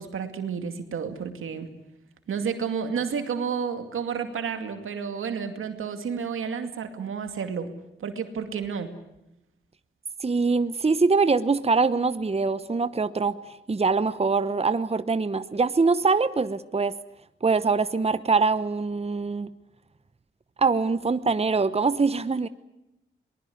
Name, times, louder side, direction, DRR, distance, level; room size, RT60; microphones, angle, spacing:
voice 1, 0.0-1.7 2.3-7.7 8.0-8.9, right 6 dB, 90° right, 7 dB, 2.4 m, -31 dB
voice 2, 10.2-13.4 13.7-16.9 17.4-19.5 20.6-22.5, right 4 dB, 30° right, 14 dB, 0.9 m, -23 dB
23.0 x 20.0 x 9.6 m, 0.91 s
cardioid pair, 55°, 20 cm